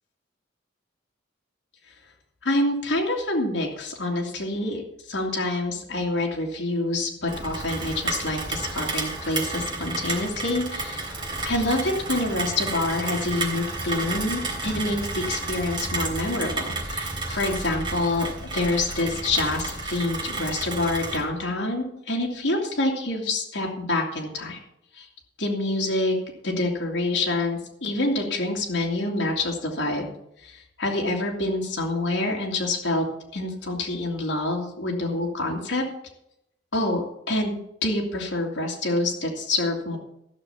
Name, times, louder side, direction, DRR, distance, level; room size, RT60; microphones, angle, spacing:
voice 1, 2.4-4.8 5.1-11.2 11.4-18.3 18.5-24.6 24.9-25.1 25.4-26.2 26.4-30.1 30.4-33.0 33.3-35.8 36.7-40.0, left 2 dB, 70° left, -1 dB, 2.4 m, -27 dB
Rain, 7.3-21.2, right 2 dB, 25° right, 3.6 m, -31 dB
14.0 x 6.7 x 7.1 m, 0.81 s
head